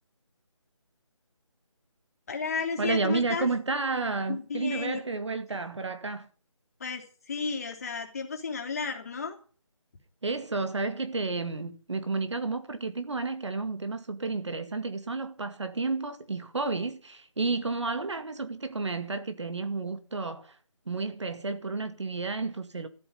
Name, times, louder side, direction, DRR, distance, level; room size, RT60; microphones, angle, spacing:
voice 1, 2.3-3.5 4.3-5.0 6.8-9.4, left 5 dB, 30° left, 3.3 m, -33 dB
voice 2, 2.8-6.3 10.2-20.5 20.9-22.9, right 3 dB, 60° right, 2.1 m, -31 dB
13.5 x 8.7 x 9.5 m
figure-of-eight pair, 175°, 17 cm